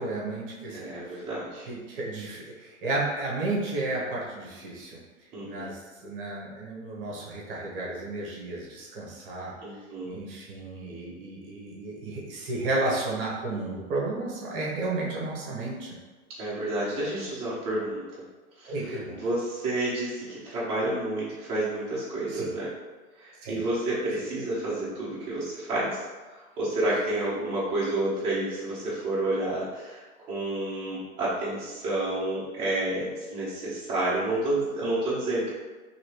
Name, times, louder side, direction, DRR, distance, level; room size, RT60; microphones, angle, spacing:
voice 1, 0.0-1.2 1.7-5.0 5.4-9.5 10.0-15.9 18.7-19.2 22.3-22.5 23.4-23.7, right 2 dB, 40° right, -4 dB, 0.9 m, -32 dB
voice 2, 0.7-1.7 5.3-5.7 9.6-10.2 16.4-18.0 18.6-22.7 23.2-26.0 26.3-35.5, right 1 dB, 15° right, -11 dB, 0.7 m, -30 dB
3.1 x 2.8 x 2.9 m, 1.2 s
hypercardioid pair, 145°, 43 cm